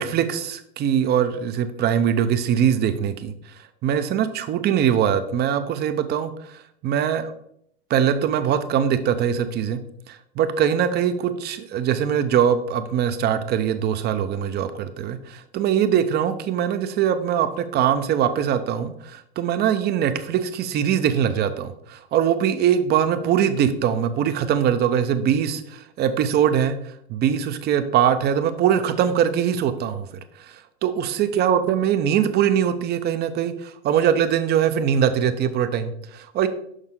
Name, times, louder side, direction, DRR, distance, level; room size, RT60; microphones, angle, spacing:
voice 1, 0.0-3.3 3.8-7.3 7.9-9.8 10.1-26.8 27.1-30.1 30.4-36.5, right 9 dB, 30° right, 11 dB, 0.6 m, -22 dB
6.4 x 5.4 x 3.7 m, 0.70 s
hypercardioid pair, 110°, 34 cm